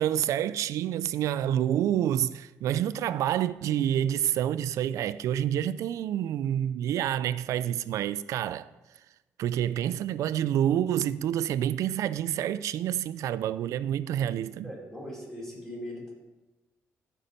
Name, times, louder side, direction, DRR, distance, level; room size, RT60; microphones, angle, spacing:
voice 1, 0.0-8.7 9.4-14.7, right 11 dB, 80° right, 0.4 m, -28 dB
voice 2, 14.6-16.1, left 1 dB, 5° left, 4.3 m, -40 dB
14.5 x 5.5 x 5.2 m
cardioid pair, 100°, 5 cm